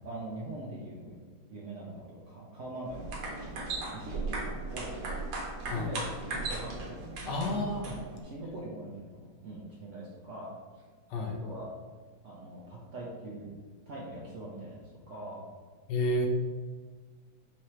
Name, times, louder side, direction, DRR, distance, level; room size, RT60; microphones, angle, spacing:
voice 1, 0.0-1.1 1.5-3.0 3.4-4.4 4.7-4.9 5.6-7.5 7.8-7.9 8.2-10.8 11.3-11.7 12.2-13.5 13.9-14.8 15.1-15.5, right 1 dB, 55° right, -5 dB, 0.8 m, -42 dB
sound 1, 2.9-8.2, right 3 dB, 85° right, 1.6 m, -37 dB
voice 2, 7.2-7.9 11.1-11.4 15.9-16.3, left 1 dB, 75° left, 2 dB, 1.3 m, -30 dB
5.8 x 2.9 x 3.1 m, 1.5 s
omnidirectional pair, 2.0 m